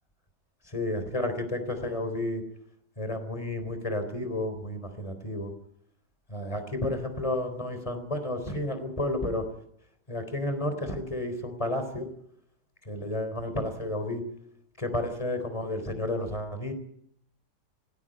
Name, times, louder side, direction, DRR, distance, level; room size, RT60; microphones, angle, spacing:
voice 1, 0.7-2.4 3.0-5.5 6.3-9.5 10.1-12.1 12.9-14.2 14.8-16.7, left 1 dB, 20° left, 8 dB, 4.0 m, -31 dB
20.5 x 16.5 x 9.0 m, 0.70 s
omnidirectional pair, 1.8 m